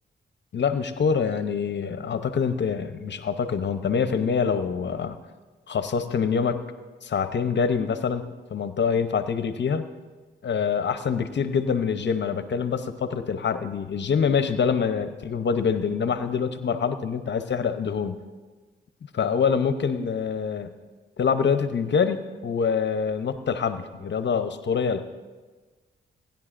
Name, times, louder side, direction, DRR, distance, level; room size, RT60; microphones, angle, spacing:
voice 1, 0.5-5.2 5.7-6.6 7.0-8.2 8.5-9.8 10.4-18.2 19.1-20.7 21.2-25.0, left 6 dB, 55° left, 10 dB, 0.8 m, -25 dB
19.5 x 10.5 x 2.6 m, 1.3 s
supercardioid pair, 50°, 21 cm